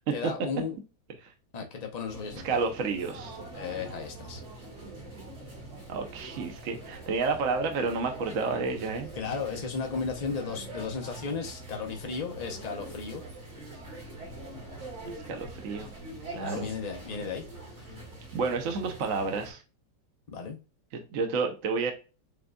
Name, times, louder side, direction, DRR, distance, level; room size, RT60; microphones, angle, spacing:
voice 1, 0.1-0.8 1.5-2.6 3.5-4.4 9.2-13.2 16.4-17.4 17.8-17.9 20.3-20.6, left 5 dB, 65° left, 0.4 m, -35 dB
sound 1, 2.0-19.5, right 2 dB, 85° right, 2.9 m, -44 dB
voice 2, 2.4-3.4 5.9-9.1 15.1-15.9 16.3-16.7 18.3-19.6 20.9-21.9, right 4 dB, 55° right, 1.0 m, -30 dB
6.9 x 2.6 x 2.3 m
omnidirectional pair, 1.9 m